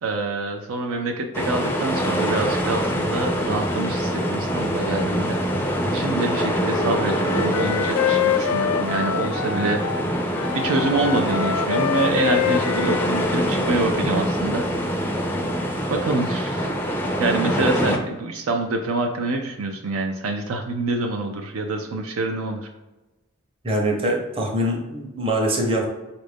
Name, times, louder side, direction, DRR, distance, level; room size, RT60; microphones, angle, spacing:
voice 1, 0.0-5.4 5.9-9.8 10.5-15.0 15.9-16.7 17.2-22.7, right 2 dB, 65° right, 3 dB, 0.4 m, -26 dB
sound 1, 1.3-18.0, equal, 10° left, 0.4 m, -25 dB
Wind instrument woodwind instrument, 6.6-10.1 10.3-13.9, left 8 dB, 80° left, 0.3 m, -26 dB
voice 2, 23.6-25.9, right 1 dB, 25° right, 0 dB, 0.8 m, -23 dB
5.1 x 2.5 x 3.4 m, 1.1 s
head